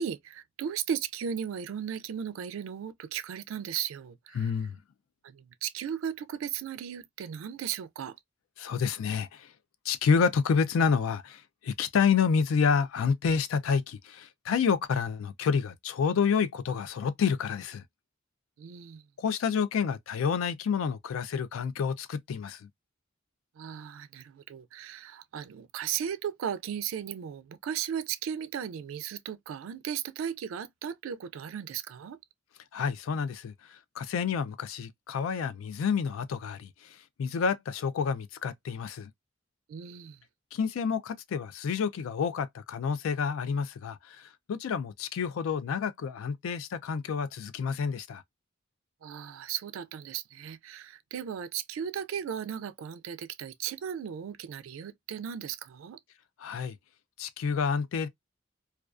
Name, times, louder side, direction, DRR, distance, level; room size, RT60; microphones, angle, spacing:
voice 1, 0.0-4.5 5.2-8.2 18.6-19.1 23.6-32.2 39.7-40.2 49.0-56.0, right 8 dB, 80° right, 0.3 m, -36 dB
voice 2, 4.4-4.8 8.6-9.5 9.9-17.8 19.2-22.7 32.7-39.1 40.5-48.2 56.4-56.8 57.2-58.1, left 6 dB, 85° left, 0.3 m, -29 dB
2.3 x 2.3 x 2.3 m
head